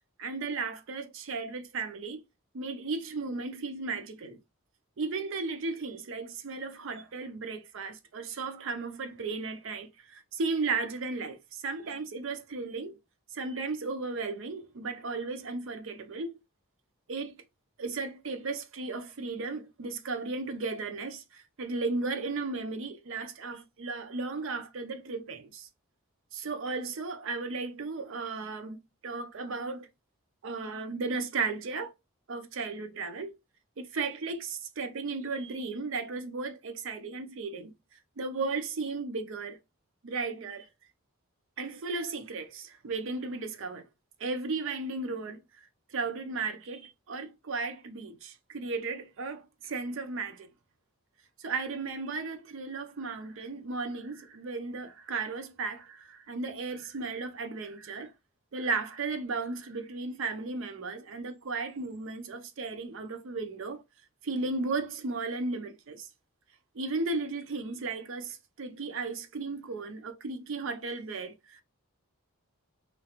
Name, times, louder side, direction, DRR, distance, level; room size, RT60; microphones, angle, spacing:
voice 1, 0.2-2.2 2.5-4.4 5.0-13.0 13.3-16.4 17.1-17.4 17.8-25.7 26.3-28.8 29.0-29.9 30.4-31.9 32.3-33.3 33.8-37.7 38.2-39.6 40.0-40.7 41.6-43.9 44.2-45.4 45.9-50.5 51.4-58.1 58.5-63.8 64.2-66.1 66.7-71.6, right 3 dB, 60° right, 0.5 m, -35 dB
3.0 x 2.4 x 2.9 m
head